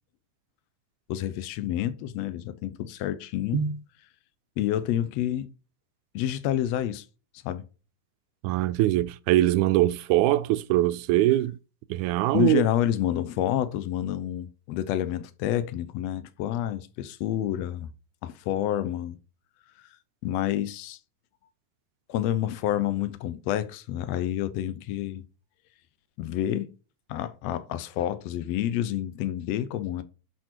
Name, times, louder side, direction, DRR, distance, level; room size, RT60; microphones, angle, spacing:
voice 1, 1.1-3.6 4.6-5.5 6.1-7.1 7.4-7.6 12.3-17.9 18.2-19.2 20.2-21.0 22.1-25.2 26.2-26.7 27.1-30.0, left 12 dB, 70° left, 1.8 m, -28 dB
voice 2, 8.4-11.6 11.9-12.7, right 15 dB, 85° right, 2.0 m, -23 dB
7.5 x 5.0 x 4.4 m
omnidirectional pair, 3.5 m